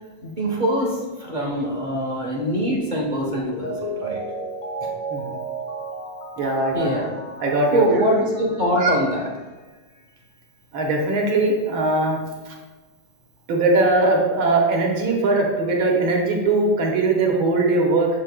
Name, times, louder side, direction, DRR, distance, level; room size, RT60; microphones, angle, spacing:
voice 1, 0.2-4.2 4.8-4.9 6.7-7.1 7.7-9.3, equal, 35° right, -3 dB, 0.7 m, -23 dB
Mallet percussion, 3.3-8.8 9.2-9.3, right 2 dB, 65° left, 0.8 m, -33 dB
voice 2, 6.4-6.9 7.4-7.9 8.8-8.9 10.7-12.2 12.5-12.6 13.5-18.1, right 2 dB, 80° right, 0 dB, 1.8 m, -20 dB
7.3 x 7.1 x 2.2 m, 1.3 s
omnidirectional pair, 2.2 m